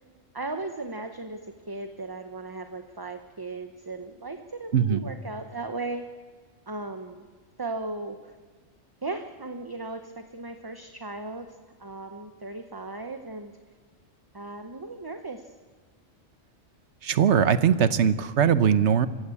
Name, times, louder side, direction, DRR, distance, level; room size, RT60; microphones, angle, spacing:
voice 1, 0.3-6.1 6.7-7.2 7.6-8.3 9.0-13.5 14.3-15.5, right 3 dB, 20° right, 7 dB, 0.9 m, -37 dB
voice 2, 17.0-19.1, right 8 dB, 75° right, 13 dB, 1.2 m, -21 dB
25.5 x 16.0 x 8.5 m, 1.5 s
omnidirectional pair, 1.2 m